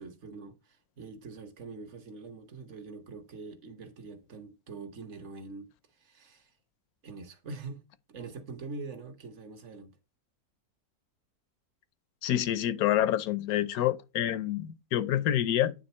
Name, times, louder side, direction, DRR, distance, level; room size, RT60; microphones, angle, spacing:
voice 1, 0.0-6.5 7.0-10.0, right 3 dB, 55° right, 1.3 m, -44 dB
voice 2, 12.2-15.7, left 12 dB, 80° left, 1.1 m, -27 dB
9.0 x 3.4 x 4.1 m
omnidirectional pair, 1.6 m